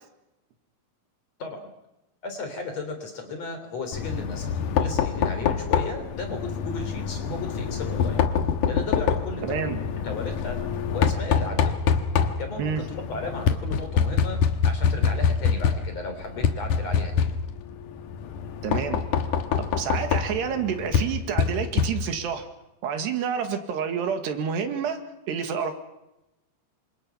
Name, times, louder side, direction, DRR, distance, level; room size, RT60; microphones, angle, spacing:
voice 1, 2.2-8.2 8.7-9.8 10.0-10.6 10.9-11.8 12.4-17.4, left 3 dB, 40° left, 6 dB, 4.2 m, -35 dB
Knock, 3.9-22.3, left 6 dB, 65° left, 2.4 m, -26 dB
voice 2, 9.4-9.8 12.6-12.8 18.6-19.0 19.6-22.5 22.8-25.7, right 7 dB, 80° right, 7 dB, 4.1 m, -29 dB
28.0 x 26.0 x 5.8 m, 0.92 s
omnidirectional pair, 4.8 m